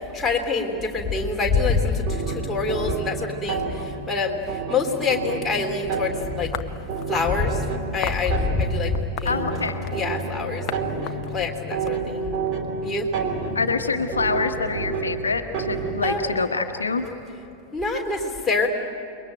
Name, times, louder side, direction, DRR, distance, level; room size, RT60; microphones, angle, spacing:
voice 1, 0.1-6.5 7.1-9.5 9.9-12.4 12.8-13.1 16.0-16.3 17.7-18.7, left 4 dB, 10° left, -1 dB, 3.5 m, -26 dB
sound 1, 2.1-16.2, right 4 dB, 35° right, 3.2 m, -30 dB
sound 2, 6.5-7.4 8.0-8.3 8.9-10.1 10.7-10.8 11.1-12.5, left 12 dB, 40° left, 0.8 m, -35 dB
voice 2, 9.2-9.9 13.5-17.1, left 4 dB, 75° left, 6 dB, 1.2 m, -25 dB
29.0 x 22.0 x 9.1 m, 2.7 s
figure-of-eight pair, 90°, 0 cm